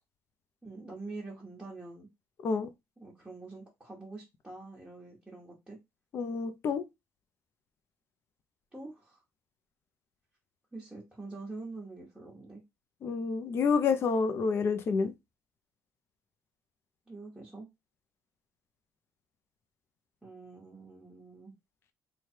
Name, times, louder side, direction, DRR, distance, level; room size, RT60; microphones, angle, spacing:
voice 1, 0.6-2.1 3.0-5.8 8.7-9.2 10.7-12.6 17.1-17.7 20.2-21.5, right 3 dB, 10° right, 1.3 m, -45 dB
voice 2, 6.1-6.8 13.0-15.1, left 5 dB, 45° left, 0.6 m, -28 dB
3.3 x 2.3 x 4.4 m
cardioid pair, 130°, 6 cm